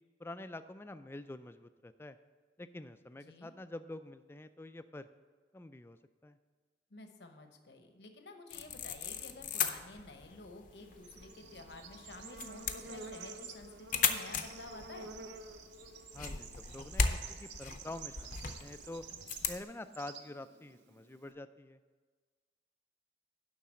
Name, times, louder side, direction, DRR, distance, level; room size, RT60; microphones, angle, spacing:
voice 1, 0.2-2.2 2.6-5.1 5.5-6.4 16.1-19.0 19.5-21.8, left 2 dB, 15° left, 11 dB, 0.3 m, -47 dB
voice 2, 3.2-3.5 6.9-15.1, left 2 dB, 65° left, 6 dB, 0.9 m, -51 dB
sound 1, 8.5-19.6, left 6 dB, 45° left, 0.6 m, -38 dB
Bird / Insect, 10.7-21.3, right 4 dB, 75° right, 0.7 m, -50 dB
11.5 x 4.0 x 7.5 m, 1.5 s
head